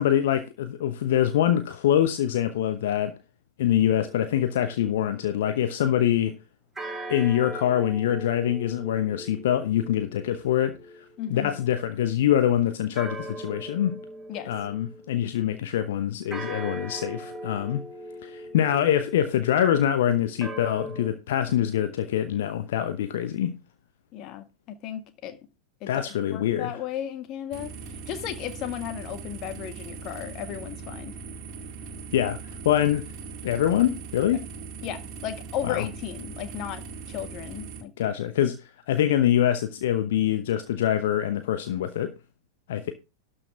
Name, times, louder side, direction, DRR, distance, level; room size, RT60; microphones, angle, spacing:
voice 1, 0.0-3.1 3.6-6.4 7.1-14.0 14.5-17.8 18.2-23.6 25.9-26.8 32.1-32.4 32.6-33.0 33.4-34.4 35.6-35.8 38.0-42.1 42.7-42.9, left 11 dB, 55° left, 0.9 m, -24 dB
sound 1, 4.0-5.5 6.8-11.6 13.0-15.4 16.3-21.1, right 1 dB, 10° right, 2.1 m, -40 dB
voice 2, 11.2-11.7 14.3-14.5 24.1-25.4 25.8-27.7 28.1-31.2 34.8-38.1, left 10 dB, 40° left, 1.6 m, -35 dB
sound 2, 27.5-37.8, right 4 dB, 40° right, 2.0 m, -40 dB
12.0 x 6.4 x 4.6 m
figure-of-eight pair, 90°, 0 cm